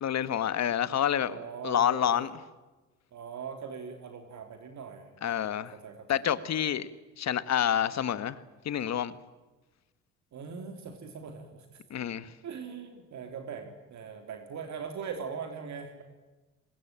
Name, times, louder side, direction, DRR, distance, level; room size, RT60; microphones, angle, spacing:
voice 1, 0.0-1.4 1.6-2.3 5.2-5.7 6.1-6.9 7.2-8.4 8.7-9.1 11.9-12.3, left 9 dB, 60° left, 1.7 m, -28 dB
voice 2, 1.3-2.3 3.1-6.3 10.3-11.8 12.4-16.0, right 6 dB, 65° right, 3.5 m, -41 dB
24.5 x 20.5 x 8.9 m
cardioid pair, 90°, 30 cm